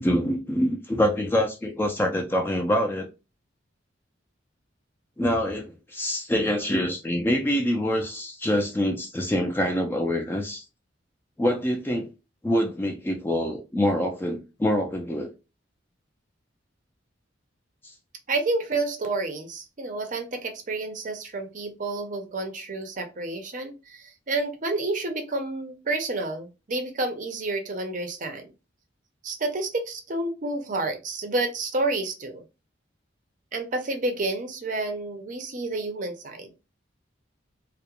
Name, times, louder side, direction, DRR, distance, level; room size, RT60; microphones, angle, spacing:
voice 1, 0.0-3.1 5.2-10.7 11.4-12.1 12.4-15.3 17.8-17.9, equal, 10° left, 0.3 m, -25 dB
voice 2, 18.3-28.5 29.2-32.4 33.5-36.5, right 2 dB, 45° right, 0.5 m, -30 dB
2.3 x 2.0 x 2.8 m
head